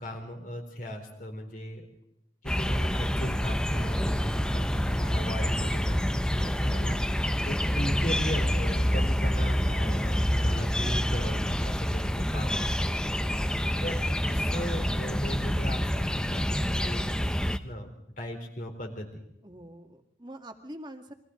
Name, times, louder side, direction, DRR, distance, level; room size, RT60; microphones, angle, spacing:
voice 1, 0.0-1.9 2.4-12.7 13.8-14.0 14.3-17.9 18.2-19.1, equal, 45° left, 3 dB, 3.9 m, -37 dB
sound 1, 2.5-17.6, equal, 5° left, 0.7 m, -27 dB
voice 2, 19.4-21.1, right 1 dB, 25° right, 5 dB, 2.0 m, -45 dB
29.0 x 23.0 x 3.9 m, 0.82 s
head